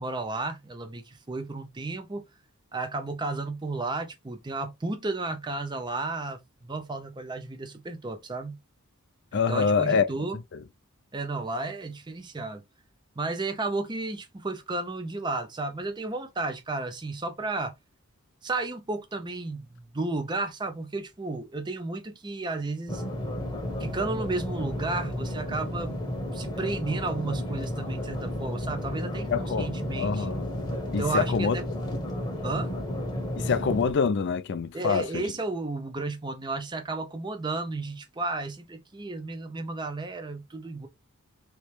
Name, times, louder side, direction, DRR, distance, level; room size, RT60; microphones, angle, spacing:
voice 1, 0.0-2.2 2.7-8.6 9.3-10.4 11.1-12.6 13.2-17.7 18.4-23.0 23.8-26.0 26.3-30.3 31.0-31.6 32.4-32.7 34.7-40.9, right 3 dB, 20° right, 0.5 m, -33 dB
voice 2, 9.3-10.1 10.5-10.6 29.3-30.5 30.9-31.6 33.4-35.2, left 5 dB, 50° left, 0.4 m, -26 dB
sound 1, 22.9-33.9, left 1 dB, 20° left, 0.9 m, -32 dB
3.1 x 3.0 x 3.1 m
head